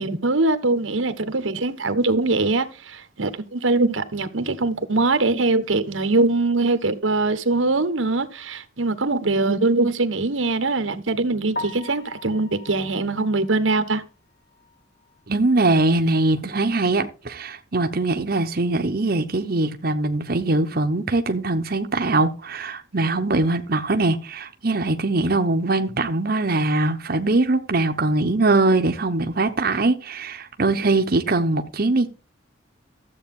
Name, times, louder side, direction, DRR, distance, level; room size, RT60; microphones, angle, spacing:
voice 1, 0.0-14.0, right 3 dB, 90° right, 1.4 m, -22 dB
Piano, 11.5-15.5 15.9-16.0 16.5-16.6 16.9-17.0 20.1-20.2 28.7-28.9, left 2 dB, 55° left, 1.6 m, -40 dB
voice 2, 15.3-32.1, right 2 dB, 50° right, 1.0 m, -22 dB
13.5 x 8.0 x 3.7 m
head